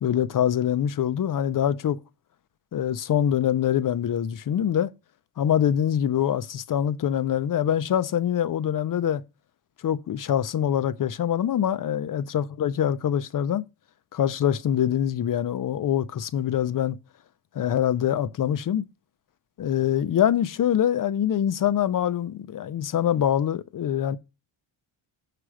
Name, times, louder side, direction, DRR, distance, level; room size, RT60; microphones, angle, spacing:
voice 1, 0.0-2.0 2.7-4.9 5.4-9.2 9.8-13.6 14.1-17.0 17.5-18.8 19.6-24.2, left 10 dB, 40° left, 0.5 m, -24 dB
6.7 x 4.9 x 6.1 m
wide cardioid pair, 150°, 49 cm